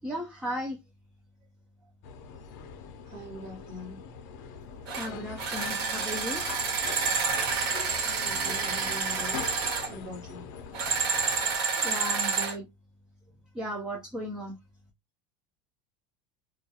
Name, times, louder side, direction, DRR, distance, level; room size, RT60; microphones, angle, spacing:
voice 1, 0.0-0.8 5.0-6.4 11.8-12.7 13.5-14.5, equal, 5° right, 0.3 m, -35 dB
sound 1, 2.0-11.6, left 6 dB, 60° left, 0.5 m, -43 dB
voice 2, 3.1-4.0 8.0-9.4 9.9-10.4, left 1 dB, 40° right, 1.0 m, -42 dB
sound 2, 4.9-5.1 5.4-9.9 10.7-12.6, right 5 dB, 75° right, 1.1 m, -29 dB
2.2 x 2.2 x 2.7 m
cardioid pair, 170°, 11 cm